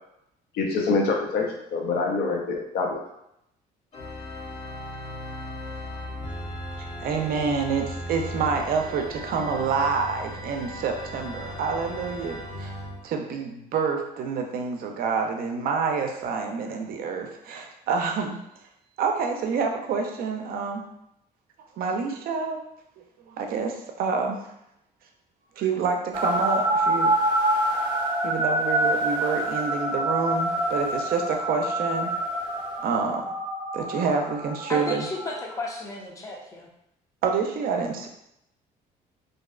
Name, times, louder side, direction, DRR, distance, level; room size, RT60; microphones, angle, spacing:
voice 1, 0.5-3.0, left 4 dB, 75° left, 0 dB, 0.5 m, -25 dB
Organ, 3.9-13.0, equal, 40° left, 0.9 m, -37 dB
voice 2, 6.8-12.8 13.0-18.4 19.0-20.8 21.8-22.6 23.3-24.5 25.6-27.2 28.2-32.1 32.8-33.3 33.7-35.1 37.2-38.1, right 5 dB, 60° right, 3 dB, 0.4 m, -27 dB
sound 1, 26.1-35.6, right 1 dB, 25° right, 0.7 m, -26 dB
voice 3, 34.7-36.7, left 2 dB, 20° left, 0 dB, 0.5 m, -33 dB
2.5 x 2.0 x 2.3 m, 0.81 s
cardioid pair, 110°, 17 cm